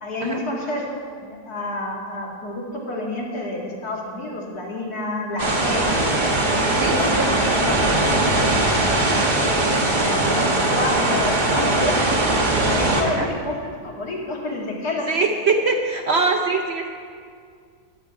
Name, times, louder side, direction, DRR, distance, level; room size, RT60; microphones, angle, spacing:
voice 1, 0.0-6.0 6.7-9.3 10.0-12.0 12.5-15.1, left 1 dB, 70° left, -2 dB, 2.7 m, -29 dB
sound 1, 5.4-13.0, right 2 dB, 30° right, 1.4 m, -20 dB
voice 2, 15.1-16.9, right 4 dB, 55° right, 2 dB, 0.8 m, -22 dB
13.5 x 10.5 x 4.8 m, 2.1 s
omnidirectional pair, 1.7 m